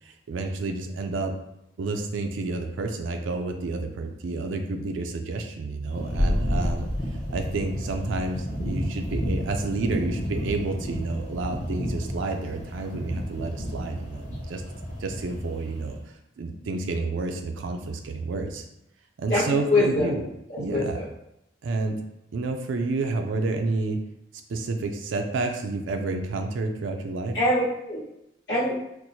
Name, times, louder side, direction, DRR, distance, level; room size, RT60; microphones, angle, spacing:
voice 1, 0.0-1.3 1.8-14.6 15.0-16.0 16.4-18.7 19.2-20.2 20.6-21.0 21.6-22.0 22.3-24.0 24.5-27.4, right 3 dB, 85° right, 4 dB, 0.4 m, -30 dB
sound 1, 5.8-16.0, equal, 35° left, 0.7 m, -32 dB
sound 2, 6.1-11.9 12.1-12.2, equal, 5° right, 0.4 m, -32 dB
voice 2, 19.3-20.1 20.5-21.1 27.3-28.0 28.5-28.7, left 2 dB, 65° left, -9 dB, 1.1 m, -24 dB
4.4 x 2.1 x 2.7 m, 0.83 s
head